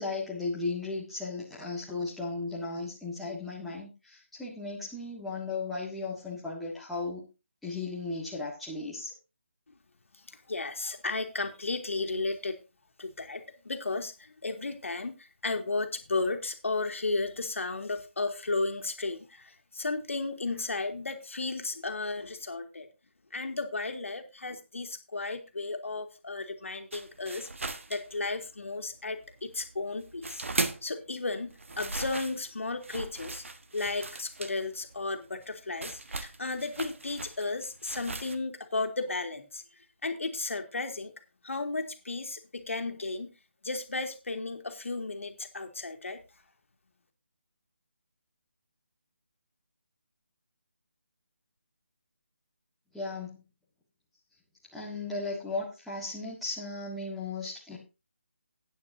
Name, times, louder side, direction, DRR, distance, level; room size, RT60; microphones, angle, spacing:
voice 1, 0.0-7.2 7.6-9.1 52.9-53.4 54.7-57.8, left 3 dB, ahead, -7 dB, 1.4 m, -36 dB
voice 2, 10.3-12.6 13.0-22.9 23.3-27.5 27.9-30.4 30.8-33.4 33.7-39.6 40.0-41.1 41.4-43.3 43.6-46.2, left 3 dB, 80° left, 5 dB, 2.0 m, -34 dB
sound 1, 26.9-28.7 29.0-31.0 31.4-38.4, right 3 dB, 75° right, 1.3 m, -38 dB
14.5 x 9.2 x 2.7 m, 0.28 s
hypercardioid pair, 170°, 7 cm